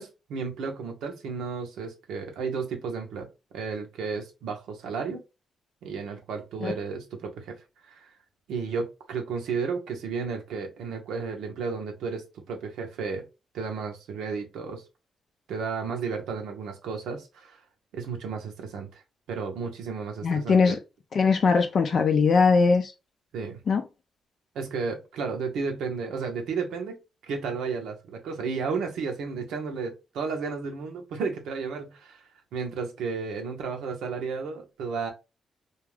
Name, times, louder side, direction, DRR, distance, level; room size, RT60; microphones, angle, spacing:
voice 1, 0.0-3.3 3.5-5.2 5.8-7.6 7.8-8.1 8.5-13.2 13.5-14.8 15.5-17.6 17.9-19.0 19.3-20.8 23.3-23.6 24.5-27.0 27.3-32.2 32.5-35.1, right 5 dB, 85° right, 0.7 m, -33 dB
voice 2, 20.2-20.8 21.1-22.9 23.7-23.8, left 5 dB, 60° left, 0.4 m, -21 dB
2.3 x 2.3 x 3.2 m
cardioid pair, 70°, 0 cm